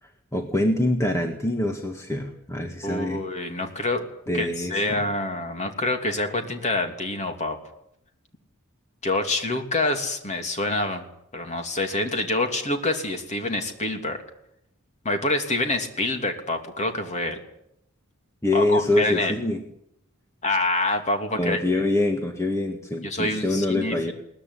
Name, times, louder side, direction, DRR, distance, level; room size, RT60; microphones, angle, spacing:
voice 1, 0.0-3.2 4.3-5.0 18.4-19.6 21.4-24.1, left 1 dB, 15° left, 4 dB, 1.7 m, -25 dB
voice 2, 2.8-4.1 4.3-7.6 9.0-11.1 11.3-14.2 15.0-17.4 18.5-19.4 20.4-21.8 23.0-24.1, left 2 dB, 30° left, 5 dB, 3.1 m, -26 dB
22.0 x 19.0 x 9.9 m, 0.78 s
head